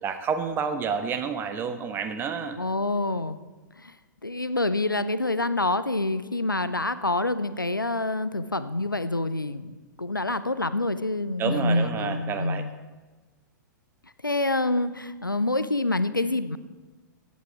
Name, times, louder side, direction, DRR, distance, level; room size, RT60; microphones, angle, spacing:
voice 1, 0.0-2.6 11.4-12.6, right 6 dB, 20° right, 8 dB, 0.9 m, -29 dB
voice 2, 2.6-3.4 3.8-3.9 4.2-12.7 14.2-16.6, left 2 dB, 90° left, 13 dB, 0.5 m, -27 dB
15.5 x 8.3 x 4.6 m, 1.3 s
figure-of-eight pair, 105°, 11 cm